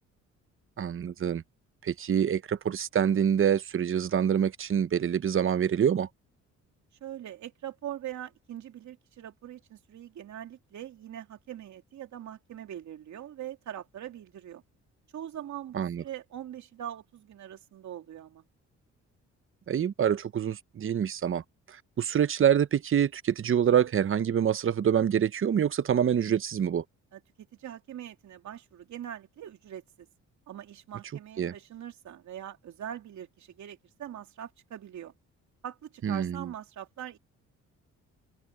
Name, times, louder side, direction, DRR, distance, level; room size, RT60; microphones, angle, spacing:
voice 1, 0.8-1.4 1.8-6.1 15.7-16.0 19.7-21.4 21.7-26.8 31.4-31.5 36.0-36.4, right 8 dB, 45° right, 0.9 m, -26 dB
voice 2, 7.0-14.6 15.1-18.4 27.1-30.1 30.5-35.1 35.6-37.2, right 11 dB, 65° right, 2.8 m, -42 dB
open air
cardioid pair, 90°, 30 cm